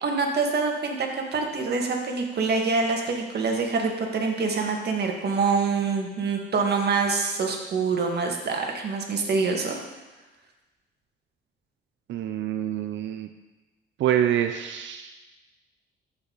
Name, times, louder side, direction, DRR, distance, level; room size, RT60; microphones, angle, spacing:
voice 1, 0.0-9.8, right 4 dB, 55° right, 2 dB, 1.9 m, -25 dB
voice 2, 12.1-13.3 14.0-15.2, right 10 dB, 70° right, 7 dB, 0.6 m, -26 dB
14.5 x 5.7 x 4.1 m, 1.1 s
cardioid pair, 90°, 20 cm